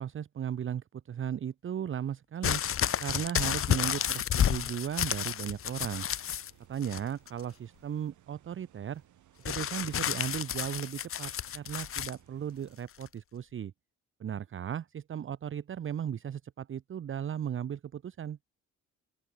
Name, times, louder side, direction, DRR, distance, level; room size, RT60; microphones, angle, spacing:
voice 1, 0.0-2.6 3.0-6.1 6.7-9.0 9.4-13.7 14.2-18.4, right 9 dB, 45° right, 0.8 m, -36 dB
sound 1, 2.4-6.5 6.8-7.4 9.5-12.1 13.0-13.1, left 9 dB, 45° left, 0.8 m, -31 dB
sound 2, 4.1-12.8, right 12 dB, 75° right, 5.9 m, -62 dB
open air
cardioid pair, 90°, 30 cm